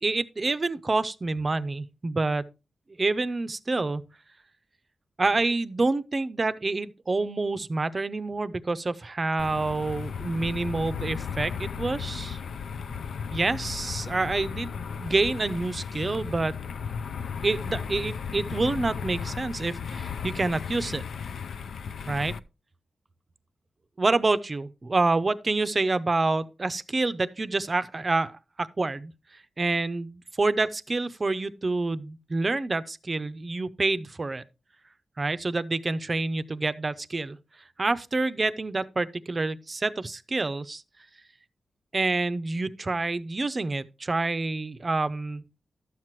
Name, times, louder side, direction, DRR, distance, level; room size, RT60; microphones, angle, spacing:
voice 1, 0.0-2.5 3.0-4.0 5.2-12.4 13.3-16.6 17.4-21.0 22.1-22.3 24.0-28.3 28.6-29.1 29.6-34.4 35.2-37.4 37.8-40.8 41.9-45.5, right 3 dB, 30° right, 0.5 m, -27 dB
sound 1, 9.4-22.4, left 6 dB, 90° left, 0.5 m, -35 dB
12.5 x 7.5 x 3.1 m
wide cardioid pair, 150°, 0 cm